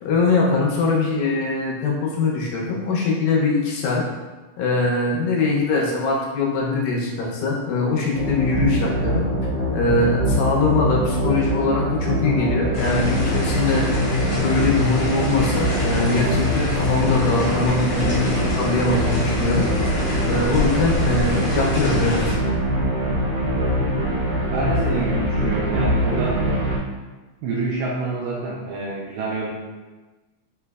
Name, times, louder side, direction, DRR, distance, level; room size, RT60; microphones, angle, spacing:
voice 1, 0.0-4.0 4.6-9.3 9.7-13.9 14.4-19.7 20.2-22.2, left 3 dB, 80° left, -2 dB, 2.3 m, -22 dB
sound 1, 8.1-26.8, equal, 60° right, 2.3 m, -23 dB
sound 2, 12.7-22.3, left 1 dB, 50° left, 1.7 m, -27 dB
voice 2, 24.5-26.5 27.4-29.5, right 3 dB, 80° right, -4 dB, 2.0 m, -27 dB
5.6 x 3.1 x 2.3 m, 1.2 s
omnidirectional pair, 4.3 m